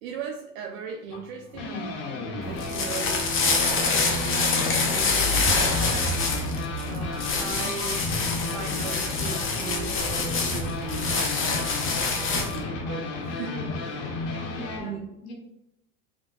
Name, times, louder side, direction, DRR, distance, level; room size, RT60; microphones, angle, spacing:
voice 1, 0.0-6.1 6.9-8.0 8.5-11.9 12.2-14.0 14.8-15.1, right 5 dB, 70° right, 1 dB, 0.6 m, -38 dB
sound 1, 1.1-14.8, left 2 dB, 60° left, 1.2 m, -33 dB
sound 2, 2.4-12.6, left 4 dB, 30° left, 0.8 m, -26 dB
voice 2, 14.5-15.3, left 1 dB, 80° left, -1 dB, 1.1 m, -40 dB
3.9 x 2.7 x 2.3 m, 0.80 s
hypercardioid pair, 75°, 43 cm